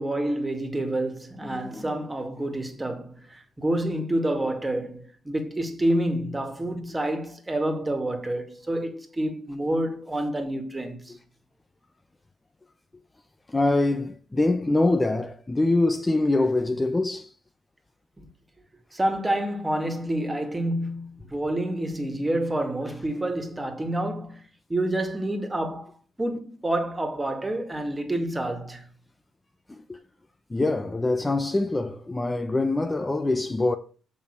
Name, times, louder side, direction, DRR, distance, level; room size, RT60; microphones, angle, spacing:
voice 1, 0.0-11.2 18.2-18.3 18.9-24.4 24.7-25.9 26.2-28.9, right 1 dB, 15° right, 2.2 m, -28 dB
voice 2, 1.4-1.9 13.5-17.3 29.7-30.0 30.5-33.8, left 2 dB, 15° left, 0.8 m, -24 dB
6.8 x 5.5 x 6.7 m
cardioid pair, 90°, 0 cm